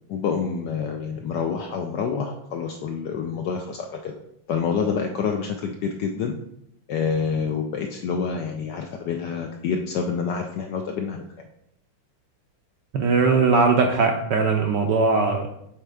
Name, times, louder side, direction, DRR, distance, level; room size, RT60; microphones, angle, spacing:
voice 1, 0.1-4.2 4.5-6.4 6.9-11.2, left 6 dB, 75° left, 3 dB, 1.0 m, -27 dB
voice 2, 12.9-15.6, right 4 dB, 75° right, 3 dB, 1.1 m, -20 dB
7.3 x 4.2 x 3.4 m, 0.76 s
omnidirectional pair, 2.4 m